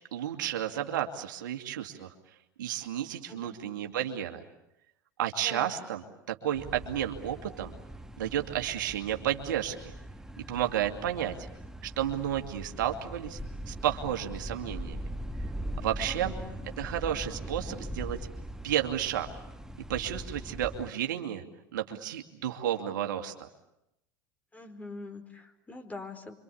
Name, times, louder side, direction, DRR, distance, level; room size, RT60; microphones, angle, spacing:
voice 1, 0.1-2.1 2.6-4.4 5.2-7.7 8.2-9.9 10.5-11.5 11.8-13.4 13.7-15.0 15.8-16.3 16.8-18.2 18.6-19.3 19.9-21.4 21.7-23.5, right 11 dB, 80° right, 4 dB, 2.5 m, -32 dB
sound 1, 6.5-20.9, right 1 dB, 5° right, 1.4 m, -41 dB
voice 2, 16.1-16.6 24.5-26.3, left 3 dB, 15° left, 5 dB, 4.8 m, -44 dB
27.5 x 25.0 x 8.6 m, 0.83 s
hypercardioid pair, 85°, 10 cm